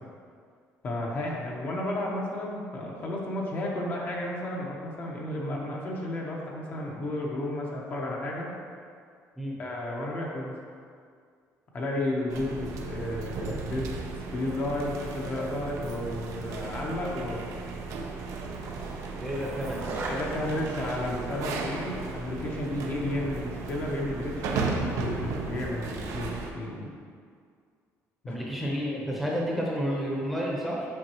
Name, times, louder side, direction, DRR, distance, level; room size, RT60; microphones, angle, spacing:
voice 1, 0.8-8.5 9.6-10.5 11.7-14.0 14.3-17.6 20.1-26.9 28.2-28.4, left 1 dB, 35° left, -2 dB, 0.9 m, -32 dB
sound 1, 12.3-26.5, right 4 dB, 70° right, 0.7 m, -35 dB
Skateboard, 17.7-26.1, right 2 dB, 55° right, 1.2 m, -43 dB
voice 2, 19.2-19.9 28.3-30.9, equal, ahead, -4 dB, 0.9 m, -30 dB
7.8 x 5.2 x 3.0 m, 2.1 s
cardioid pair, 150°, 6 cm